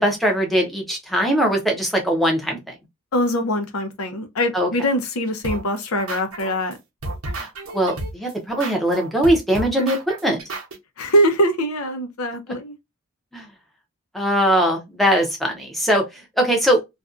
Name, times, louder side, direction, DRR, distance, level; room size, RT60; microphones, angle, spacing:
voice 1, 0.0-2.6 4.5-4.7 7.4-7.5 7.7-10.4 13.3-13.4 14.1-16.0 16.4-16.8, equal, ahead, 0.6 m, -20 dB
voice 2, 3.1-6.8 11.0-12.7, equal, 90° left, 0.7 m, -22 dB
sound 1, 5.4-6.7 7.0-10.7, right 2 dB, 80° right, 0.8 m, -31 dB
2.5 x 2.2 x 2.4 m
head